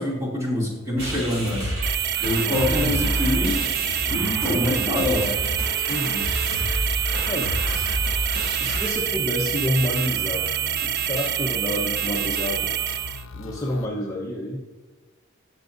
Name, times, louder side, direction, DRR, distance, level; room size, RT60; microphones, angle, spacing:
voice 1, 0.0-1.8 2.2-3.7 4.1-5.3, left 1 dB, 15° right, -4 dB, 2.7 m, -25 dB
sound 1, 1.0-8.9, equal, 70° right, 3.3 m, -29 dB
sound 2, 1.8-13.2, right 11 dB, 50° right, 0.4 m, -26 dB
voice 2, 2.5-3.5 5.9-6.3 7.3-7.5 8.6-10.5 10.8-12.7 13.3-14.6, left 1 dB, 15° left, -4 dB, 1.0 m, -29 dB
sound 3, 4.4-13.9, left 4 dB, 80° left, 0.6 m, -38 dB
17.0 x 6.2 x 2.6 m, 1.3 s
head